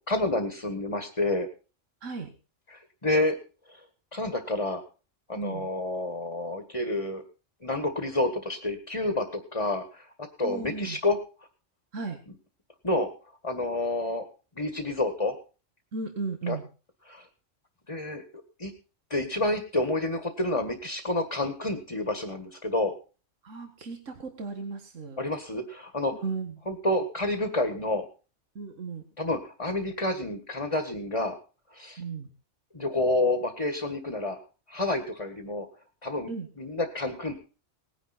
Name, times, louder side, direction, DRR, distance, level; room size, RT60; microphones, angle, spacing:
voice 1, 0.1-1.5 2.7-3.4 4.1-4.8 5.3-7.2 7.6-11.2 12.8-13.1 13.4-14.3 14.6-15.3 16.5-16.6 17.1-17.3 17.9-18.2 18.6-18.7 19.1-22.9 25.2-26.1 26.7-28.0 29.2-31.4 31.7-32.0 32.7-34.4 34.7-35.7 36.0-37.3, left 2 dB, 25° left, 8 dB, 1.7 m, -29 dB
voice 2, 5.4-5.7 10.4-11.0 11.9-12.2 15.9-16.7 23.4-25.3 26.1-26.6 28.6-29.0 32.0-32.3 36.3-36.5, right 4 dB, 75° right, 6 dB, 2.1 m, -35 dB
19.0 x 10.0 x 4.3 m, 0.35 s
omnidirectional pair, 1.3 m